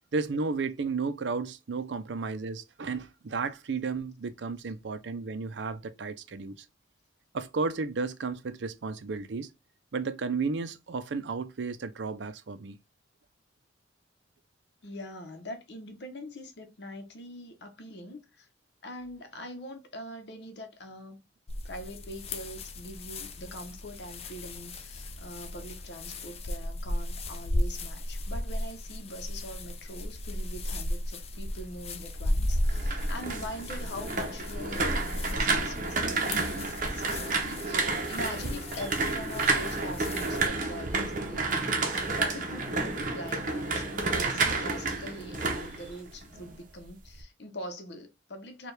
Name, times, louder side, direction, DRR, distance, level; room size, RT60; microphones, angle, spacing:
voice 1, 0.1-6.6 7.3-9.5 9.9-12.8, right 4 dB, 80° right, 0.5 m, -33 dB
voice 2, 14.8-18.5 18.8-21.2 21.6-48.7, left 1 dB, 65° left, 0.8 m, -43 dB
sound 1, 21.5-40.5, left 1 dB, 35° left, 0.5 m, -35 dB
sound 2, 32.5-46.5 46.8-47.2, right 3 dB, 45° right, 0.7 m, -30 dB
sound 3, 37.7-46.0, equal, 5° right, 1.6 m, -51 dB
4.5 x 2.3 x 3.2 m
head